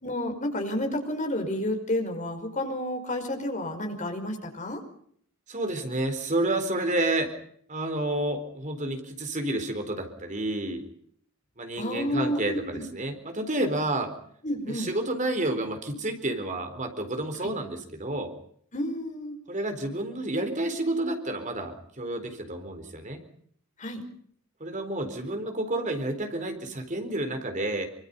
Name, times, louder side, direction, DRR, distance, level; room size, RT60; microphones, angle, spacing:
voice 1, 0.0-4.8 11.8-12.8 14.4-14.9 17.4-17.5 18.7-19.4 23.8-24.0, left 1 dB, 35° left, 5 dB, 5.3 m, -30 dB
voice 2, 5.5-7.3 7.7-10.8 11.6-14.1 14.7-18.3 19.5-23.2 24.6-27.9, right 1 dB, 35° right, 7 dB, 4.1 m, -30 dB
27.0 x 25.5 x 5.5 m, 0.64 s
head